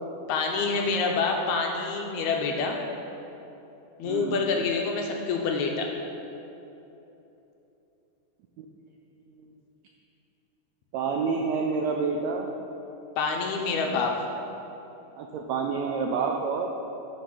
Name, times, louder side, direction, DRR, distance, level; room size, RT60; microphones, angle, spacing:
voice 1, 0.3-2.8 4.0-5.9 13.2-14.1, left 4 dB, 75° left, 1 dB, 1.9 m, -27 dB
voice 2, 4.0-4.4 8.6-8.7 10.9-12.5 15.2-16.7, right 5 dB, 85° right, 2 dB, 1.6 m, -28 dB
8.5 x 5.3 x 5.9 m, 3.0 s
omnidirectional pair, 3.7 m